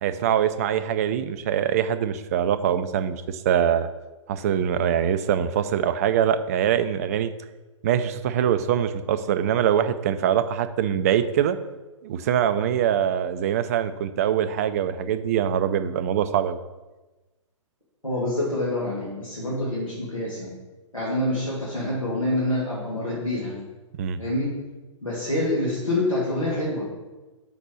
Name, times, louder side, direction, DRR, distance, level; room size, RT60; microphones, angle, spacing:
voice 1, 0.0-3.9 4.3-7.3 7.8-11.6 12.0-16.6 24.0-24.2, right 9 dB, 30° right, 11 dB, 0.3 m, -23 dB
voice 2, 18.0-20.5 20.9-23.5 24.2-24.5 25.0-26.9, left 1 dB, 90° left, -7 dB, 2.3 m, -26 dB
5.9 x 4.1 x 6.1 m, 1.2 s
figure-of-eight pair, 120°, 17 cm